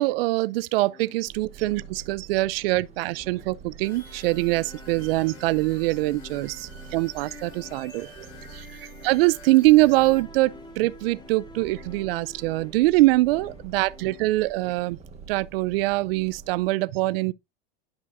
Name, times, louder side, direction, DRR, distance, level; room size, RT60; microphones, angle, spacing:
voice 1, 0.0-8.3 8.5-8.7 9.0-15.0 15.3-17.3, right 20 dB, 75° right, 0.5 m, -23 dB
sound 1, 0.8-14.7, left 4 dB, 15° left, 0.8 m, -50 dB
Purr, 1.3-16.7, right 6 dB, 20° right, 1.5 m, -46 dB
sound 2, 3.8-10.2, left 3 dB, 70° left, 4.4 m, -51 dB
11.0 x 5.0 x 2.5 m
supercardioid pair, 125°, 29 cm